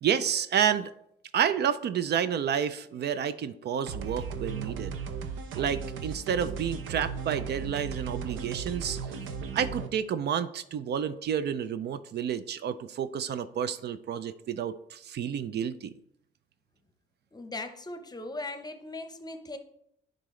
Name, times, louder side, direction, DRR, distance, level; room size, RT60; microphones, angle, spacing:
voice 1, 0.0-0.9 1.3-4.9 5.6-9.0 9.5-15.9, right 8 dB, 60° right, 13 dB, 0.4 m, -30 dB
sound 1, 3.9-9.9, right 6 dB, 80° right, 0.7 m, -36 dB
voice 2, 17.3-19.6, left 2 dB, 20° left, 8 dB, 0.8 m, -39 dB
10.5 x 3.9 x 3.2 m, 0.75 s
cardioid pair, 90°, 20 cm